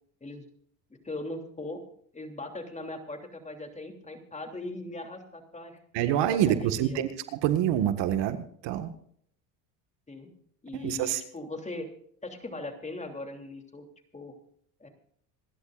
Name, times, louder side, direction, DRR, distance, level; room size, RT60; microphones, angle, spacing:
voice 1, 1.0-1.8 2.1-7.0 10.1-10.3 10.6-11.9 12.2-13.9 14.1-14.4 14.8-14.9, left 2 dB, 15° left, 4 dB, 3.1 m, -39 dB
voice 2, 5.9-8.9 10.8-11.2, right 11 dB, 70° right, 9 dB, 1.8 m, -26 dB
27.0 x 12.0 x 2.5 m, 0.65 s
supercardioid pair, 105°, 44 cm